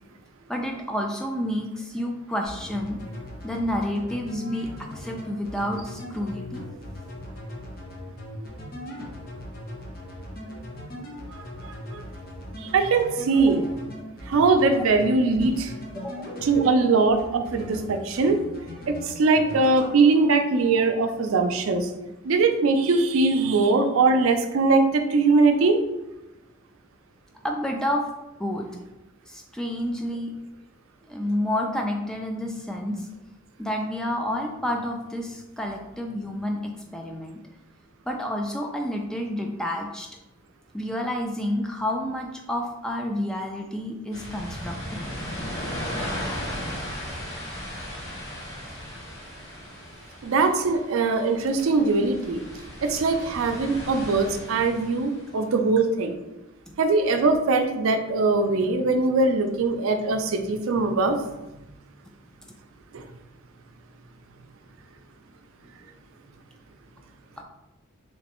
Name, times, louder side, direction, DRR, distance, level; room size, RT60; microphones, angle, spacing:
voice 1, 0.5-3.0 3.4-6.6 13.4-13.6 15.9-16.4 27.3-28.0 28.4-28.7 29.3-30.3 31.1-33.1 33.6-37.4 38.1-40.1 40.7-45.1 56.7-56.8 67.4-67.5, left 1 dB, 5° left, 1 dB, 0.3 m, -29 dB
sound 1, 2.4-16.8 17.2-17.8 18.1-19.0 19.3-19.9, left 1 dB, 45° left, 0.7 m, -39 dB
voice 2, 11.3-12.0 12.6-13.6 14.3-15.7 16.4-18.4 18.9-21.9 22.2-25.8 50.2-52.4 52.8-56.2 56.8-61.6 62.9-63.0, right 3 dB, 90° right, 6 dB, 0.4 m, -21 dB
sound 2, 44.1-55.3, equal, 85° left, 1.3 m, -36 dB
3.2 x 3.1 x 2.9 m, 0.99 s
head